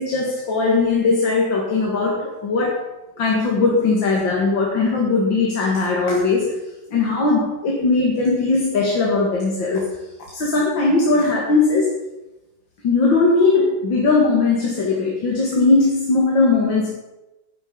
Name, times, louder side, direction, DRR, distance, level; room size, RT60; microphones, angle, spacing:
voice 1, 0.0-2.9 3.2-6.6 6.9-10.0 10.3-11.9 12.8-16.9, left 3 dB, 80° left, -2 dB, 2.7 m, -19 dB
12.0 x 10.5 x 5.4 m, 0.98 s
omnidirectional pair, 2.0 m